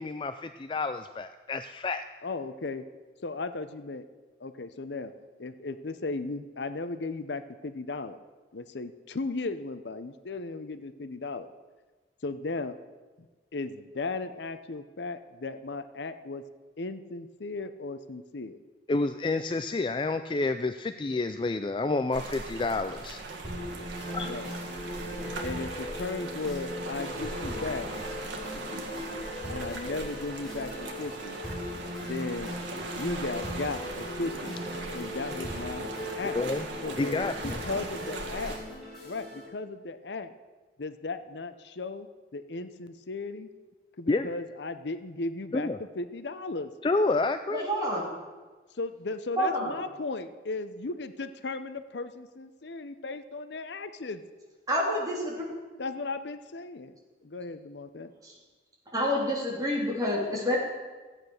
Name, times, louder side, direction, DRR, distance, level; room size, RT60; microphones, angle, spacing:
voice 1, 0.0-2.1 18.9-23.2 24.1-24.3 36.3-36.7 37.0-37.6 44.1-44.3 45.5-45.8 46.8-47.6, left 3 dB, 25° left, 10 dB, 0.3 m, -29 dB
voice 2, 2.2-2.8 3.2-4.1 4.4-5.1 5.4-8.2 8.5-11.5 12.2-12.8 13.5-16.4 16.8-18.6 24.2-24.5 25.4-27.9 28.7-28.9 29.5-31.4 32.0-32.5 32.9-34.6 34.9-35.9 36.2-36.4 36.8-38.6 39.0-40.3 40.8-43.5 44.0-45.7 46.0-46.7 48.7-54.2 55.8-57.0 57.2-58.1, left 3 dB, 75° left, 11 dB, 0.7 m, -36 dB
sound 1, 22.1-38.6, right 2 dB, 90° right, 1.7 m, -39 dB
sound 2, 23.4-39.4, left 1 dB, ahead, 5.4 m, -39 dB
voice 3, 47.5-48.0 49.4-49.7 54.7-55.4 58.2-58.3 58.9-60.6, equal, 20° right, -4 dB, 3.4 m, -28 dB
14.5 x 9.0 x 6.5 m, 1.3 s
head